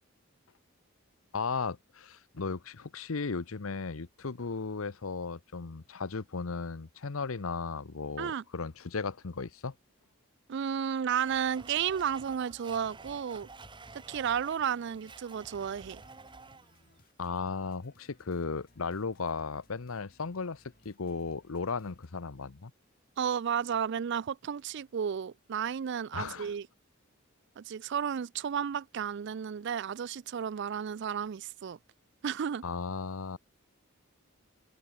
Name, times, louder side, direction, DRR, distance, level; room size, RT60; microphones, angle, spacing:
voice 1, 1.3-9.7 17.2-22.7 26.1-26.5 32.6-33.4, left 4 dB, 85° left, 0.9 m, -36 dB
voice 2, 10.5-13.5 14.1-16.0 23.2-26.7 27.6-31.8 32.2-32.6, right 8 dB, 60° right, 0.4 m, -32 dB
Domestic sounds home sounds, 11.2-16.9, right 3 dB, 25° right, 1.4 m, -51 dB
sound 1, 12.8-22.1, left 1 dB, 45° left, 5.4 m, -64 dB
head